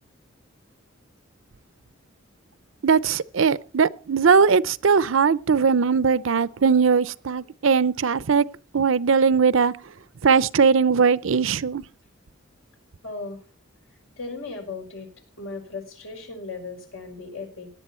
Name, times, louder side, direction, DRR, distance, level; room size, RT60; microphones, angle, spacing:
voice 1, 2.8-8.5 8.7-9.7 10.2-11.8, right 5 dB, 75° right, 0.6 m, -20 dB
voice 2, 13.0-13.4 14.2-15.1 15.4-17.7, left 3 dB, 80° left, 5.5 m, -36 dB
18.0 x 11.0 x 4.4 m
head